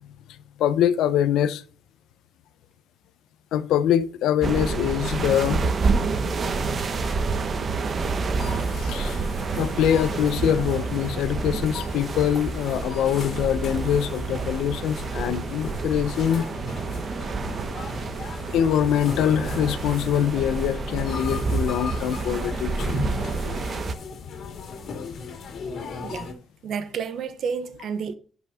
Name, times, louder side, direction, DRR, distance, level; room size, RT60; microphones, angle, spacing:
voice 1, 0.6-1.6 3.5-5.8 8.7-9.2 9.5-16.5 17.9-18.0 18.5-23.4 24.2-24.3 25.6-25.7, left 10 dB, 85° left, 1.0 m, -24 dB
sound 1, 4.4-23.9, right 4 dB, 45° right, 1.5 m, -28 dB
sound 2, 8.4-26.3, left 4 dB, 60° left, 2.7 m, -38 dB
voice 2, 26.0-26.4 26.6-28.1, right 6 dB, 65° right, 1.5 m, -30 dB
11.5 x 6.1 x 4.4 m
cardioid pair, 90°, 0 cm